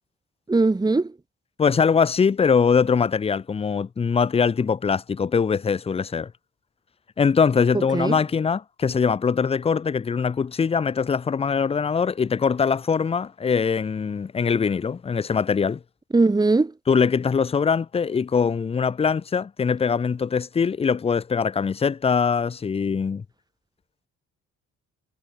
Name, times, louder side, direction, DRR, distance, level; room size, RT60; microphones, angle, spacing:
voice 1, 0.5-1.1 7.7-8.2 16.1-16.7, right 3 dB, 15° right, 1.1 m, -20 dB
voice 2, 1.6-6.3 7.2-15.8 16.9-23.2, left 6 dB, 20° left, 0.4 m, -22 dB
cardioid pair, 90°, 30 cm